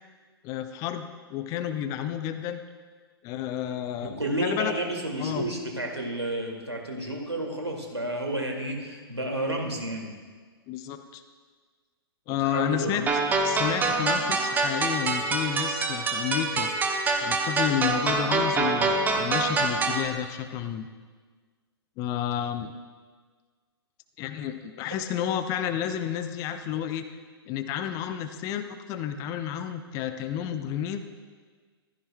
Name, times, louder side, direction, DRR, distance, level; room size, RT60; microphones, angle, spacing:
voice 1, 0.4-2.6 3.2-4.8 5.2-5.5 10.7-11.2 12.3-13.1 13.4-16.7 17.2-20.9 22.0-22.7 24.2-27.0 27.5-31.0, left 10 dB, 25° left, 9 dB, 0.5 m, -31 dB
voice 2, 4.2-10.1 12.4-13.6, right 1 dB, 85° right, 1 dB, 2.1 m, -31 dB
sound 1, 13.1-20.1, right 3 dB, 15° right, 0.9 m, -26 dB
15.0 x 13.5 x 2.2 m, 1.5 s
figure-of-eight pair, 115°, 14 cm